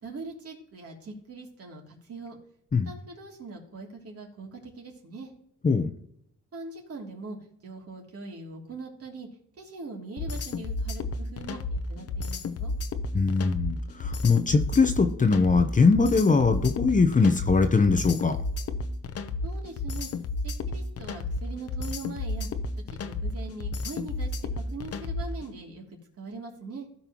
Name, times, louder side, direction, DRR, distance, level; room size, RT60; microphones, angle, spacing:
voice 1, 0.0-2.4 2.8-5.3 6.5-7.4 7.6-9.3 9.5-12.7 19.4-20.1 20.4-22.5 22.9-25.8 26.2-26.9, right 3 dB, 50° right, -1 dB, 3.0 m, -41 dB
sound 1, 10.2-25.4, left 3 dB, 50° left, 0.9 m, -32 dB
voice 2, 13.1-18.4, left 4 dB, 25° left, 7 dB, 0.9 m, -22 dB
15.5 x 5.5 x 3.0 m, 0.70 s
cardioid pair, 90°, 30 cm